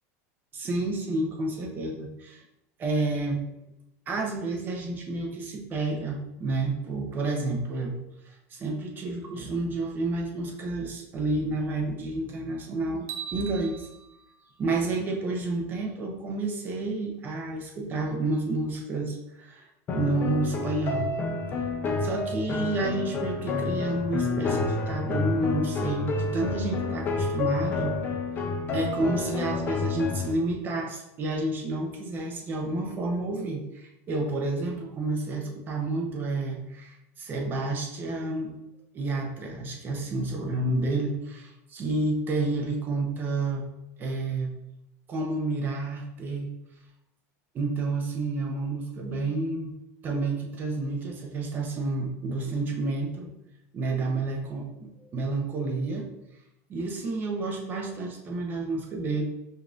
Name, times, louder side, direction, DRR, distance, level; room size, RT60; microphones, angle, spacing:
voice 1, 0.5-2.4 2.8-3.4 4.1-8.0 8.3-13.9 14.6-19.6 19.9-21.1 22.0-27.9 28.7-38.5 38.9-43.7 44.0-44.5 45.1-46.5 47.5-49.7 50.0-53.3 53.7-56.1 56.7-59.2, right 2 dB, 25° right, 2 dB, 0.6 m, -30 dB
sound 1, 13.1-15.3, right 9 dB, 75° right, 0.5 m, -42 dB
sound 2, 19.9-30.3, left 4 dB, 25° left, 0.5 m, -29 dB
5.2 x 2.5 x 2.5 m, 0.85 s
supercardioid pair, 160°, 8 cm